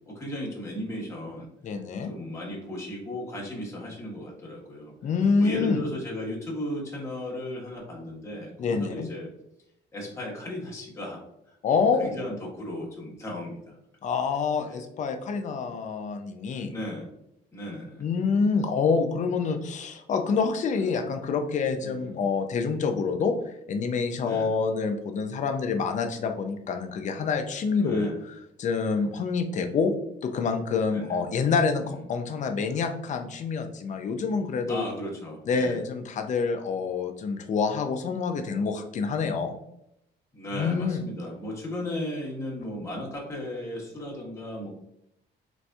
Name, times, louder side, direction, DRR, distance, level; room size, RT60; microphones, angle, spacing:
voice 1, 0.1-1.5 2.1-4.9 5.4-9.3 9.9-11.2 11.5-13.8 14.6-14.8 16.7-17.1 17.5-18.1 18.4-18.6 20.7-20.8 21.8-22.2 24.2-24.5 27.7-28.2 30.9-31.2 31.8-32.0 34.7-35.8 40.3-44.7, left 1 dB, 15° left, -4 dB, 1.1 m, -36 dB
voice 2, 1.6-2.1 5.0-5.8 8.6-9.1 11.6-12.2 14.0-16.7 18.0-23.3 23.7-28.1 28.6-29.9 30.2-34.8 35.5-39.5 40.5-41.0, left 5 dB, 40° left, 7 dB, 0.4 m, -27 dB
4.0 x 2.6 x 2.2 m, 0.79 s
cardioid pair, 130°, 19 cm